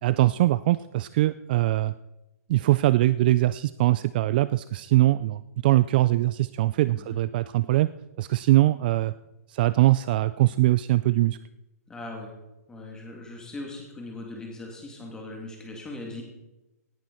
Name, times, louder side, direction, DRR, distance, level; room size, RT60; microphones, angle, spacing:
voice 1, 0.0-1.9 2.5-7.9 8.2-9.1 9.5-11.4, right 16 dB, 35° right, 16 dB, 0.3 m, -22 dB
voice 2, 11.9-12.3 12.7-16.2, left 2 dB, 10° left, 0 dB, 2.9 m, -39 dB
18.0 x 10.5 x 4.4 m, 1.0 s
hypercardioid pair, 160°, 9 cm